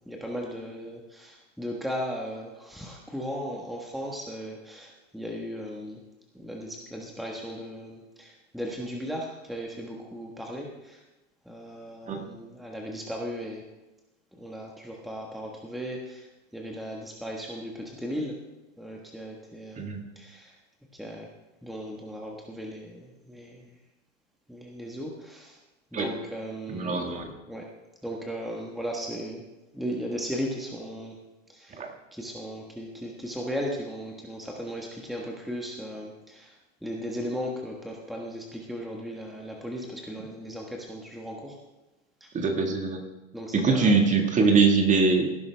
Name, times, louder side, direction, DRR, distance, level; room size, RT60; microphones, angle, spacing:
voice 1, 0.1-6.0 6.3-11.0 11.4-13.6 14.4-16.3 16.5-18.4 18.8-19.8 20.1-20.5 20.9-21.3 21.6-23.7 24.5-25.6 25.9-27.1 27.5-27.7 28.0-29.4 29.7-31.1 31.5-31.8 32.1-36.5 36.8-41.6 42.2-42.3 43.3-44.3, equal, ahead, -1 dB, 1.4 m, -36 dB
voice 2, 26.7-27.3 31.8-31.9 42.3-43.0 43.5-45.5, right 4 dB, 20° right, 4 dB, 1.8 m, -23 dB
18.0 x 10.5 x 3.5 m, 1.0 s
hypercardioid pair, 130°, 39 cm